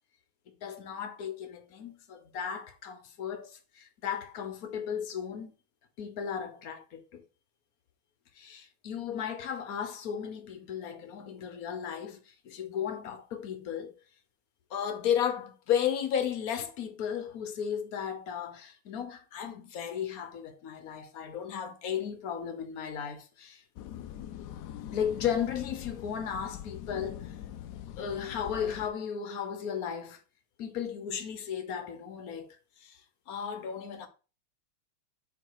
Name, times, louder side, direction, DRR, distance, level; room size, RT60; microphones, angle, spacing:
voice 1, 0.6-5.5 6.0-7.2 8.4-13.9 14.7-23.6 24.4-24.5 24.9-27.3 28.0-30.2 30.6-32.5 32.8-33.0 33.3-34.1, left 8 dB, 55° left, 1.1 m, -35 dB
sound 1, 23.8-28.9, left 11 dB, 80° left, 0.9 m, -43 dB
7.1 x 3.2 x 4.6 m
omnidirectional pair, 2.3 m